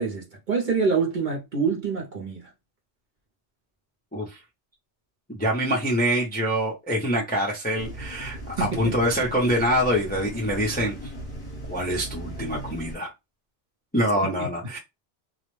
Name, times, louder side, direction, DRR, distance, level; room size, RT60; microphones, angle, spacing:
voice 1, 0.0-2.5 8.6-9.0 14.4-14.5, right 5 dB, 50° right, 0.7 m, -26 dB
voice 2, 5.3-10.9 11.7-13.1 13.9-14.8, equal, 10° left, 0.4 m, -25 dB
sound 1, 7.8-13.0, equal, 30° left, 1.0 m, -37 dB
2.3 x 2.0 x 3.0 m
omnidirectional pair, 1.2 m